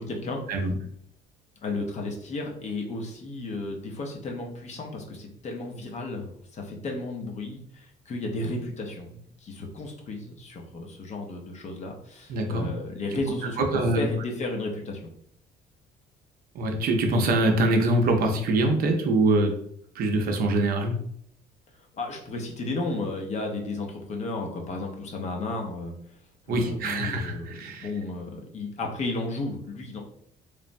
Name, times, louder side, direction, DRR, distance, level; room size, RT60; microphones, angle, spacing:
voice 1, 0.1-0.4 1.6-15.1 22.0-25.9 26.5-27.6 27.8-30.0, left 2 dB, 45° left, 2 dB, 0.6 m, -33 dB
voice 2, 12.3-12.7 13.6-14.0 16.5-19.5 20.0-20.9 26.5-27.9, right 2 dB, 60° right, 3 dB, 0.6 m, -24 dB
3.2 x 2.0 x 2.5 m, 0.67 s
cardioid pair, 110°, 17 cm